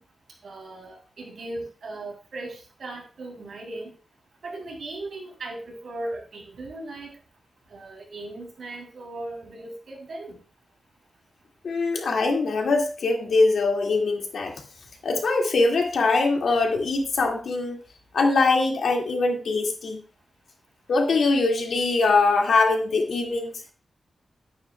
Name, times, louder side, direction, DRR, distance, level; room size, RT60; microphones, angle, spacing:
voice 1, 0.4-3.9 4.4-7.1 7.7-10.4, right 2 dB, 65° right, 1 dB, 3.3 m, -37 dB
voice 2, 11.6-14.5 15.0-17.8 18.1-20.0 20.9-23.6, left 3 dB, 85° left, 2 dB, 2.0 m, -22 dB
10.5 x 9.2 x 2.3 m, 0.36 s
wide cardioid pair, 160°, 0 cm